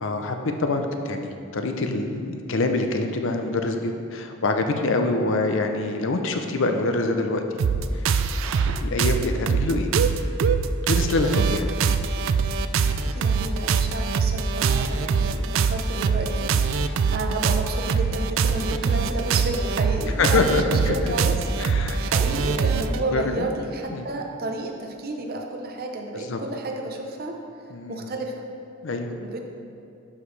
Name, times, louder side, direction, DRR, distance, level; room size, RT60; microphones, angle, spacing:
voice 1, 0.0-7.4 7.9-8.1 8.7-9.9 10.9-11.7 20.2-21.1 21.6-22.0 22.8-23.5 23.9-24.1 26.1-26.4 27.7-28.1 28.8-29.2, left 2 dB, 65° left, 5 dB, 0.6 m, -25 dB
sound 1, 7.6-23.0, right 5 dB, 65° right, 0.3 m, -23 dB
voice 2, 13.0-21.4 21.7-27.4 27.9-28.4 29.2-29.4, right 2 dB, 45° right, 2 dB, 0.7 m, -31 dB
11.0 x 5.0 x 3.3 m, 2.6 s
head